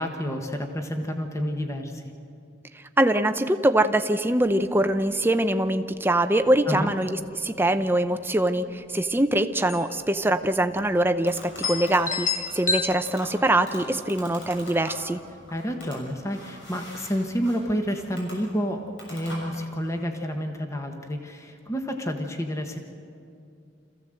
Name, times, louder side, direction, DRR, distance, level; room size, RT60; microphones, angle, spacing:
voice 1, 0.0-2.0 6.7-6.9 15.5-22.8, equal, 15° left, 4 dB, 1.4 m, -29 dB
voice 2, 3.0-15.2, right 1 dB, 10° right, 9 dB, 0.7 m, -23 dB
sound 1, 4.5-4.6 4.9-5.0 5.4-5.8 6.4-6.6 6.9-7.5 8.6-8.7 9.0-9.1 9.7-10.0 10.3-10.4 11.0-11.1 11.6-12.8, left 5 dB, 40° left, 1.5 m, -29 dB
sound 2, 10.6-20.0, left 1 dB, 75° left, 6.7 m, -44 dB
27.0 x 15.5 x 7.8 m, 2.5 s
head